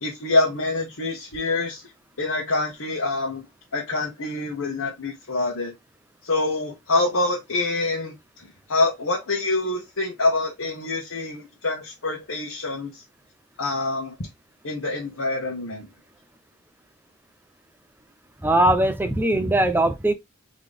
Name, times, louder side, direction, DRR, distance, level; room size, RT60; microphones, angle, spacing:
voice 1, 0.0-1.8 2.2-5.7 6.2-13.0 13.6-14.3 14.6-15.9, left 2 dB, 75° left, 1.3 m, -26 dB
voice 2, 18.4-20.1, right 1 dB, 10° right, 0.6 m, -20 dB
3.9 x 3.2 x 3.4 m
head